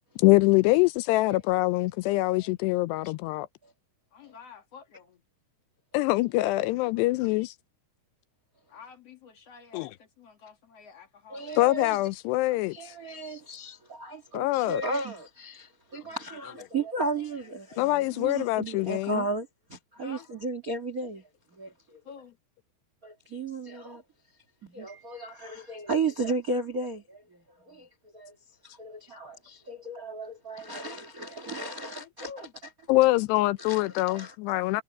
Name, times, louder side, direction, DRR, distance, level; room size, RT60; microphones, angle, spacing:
voice 1, 0.2-3.5 5.9-7.5 9.7-9.9 11.6-12.9 14.3-14.8 17.8-19.2 32.9-34.8, left 19 dB, 80° left, 2.7 m, -24 dB
voice 2, 4.1-5.2 8.7-12.0 19.9-20.3 22.0-22.4 32.0-32.5, left 6 dB, 55° left, 1.9 m, -49 dB
voice 3, 11.3-12.0 12.7-22.0 23.0-24.0 24.6-27.9 28.1-28.3 28.6-32.5 33.6-34.6, right 3 dB, 45° right, 1.1 m, -35 dB
omnidirectional pair, 4.9 m